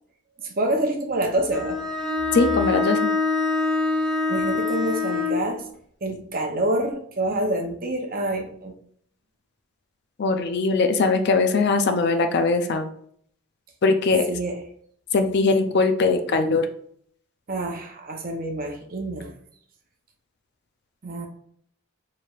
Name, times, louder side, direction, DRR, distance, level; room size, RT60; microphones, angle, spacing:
voice 1, 0.4-1.8 4.3-5.6 6.0-8.7 14.3-14.6 17.5-19.3 21.0-21.3, right 1 dB, 40° right, 3 dB, 0.7 m, -27 dB
Bowed string instrument, 1.5-5.5, left 4 dB, 5° left, 1.0 m, -24 dB
voice 2, 2.3-3.1 10.2-12.9 13.8-14.3 15.1-16.7, left 3 dB, 50° left, 7 dB, 0.4 m, -21 dB
4.4 x 3.2 x 2.4 m, 0.64 s
head